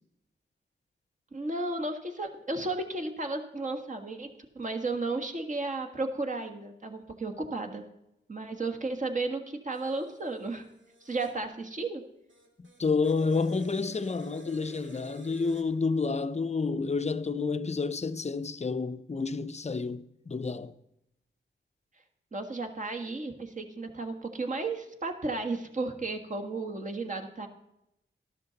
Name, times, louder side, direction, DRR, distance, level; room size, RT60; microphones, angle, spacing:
voice 1, 1.3-4.3 4.5-7.8 8.3-10.7 11.0-12.0 22.3-27.5, right 3 dB, 40° right, 1.7 m, -33 dB
sound 1, 9.7-11.4 12.3-15.6, right 1 dB, 70° right, 2.4 m, -51 dB
voice 2, 12.8-20.7, left 4 dB, 35° left, 0.6 m, -29 dB
13.0 x 12.5 x 4.0 m
wide cardioid pair, 85°, 20 cm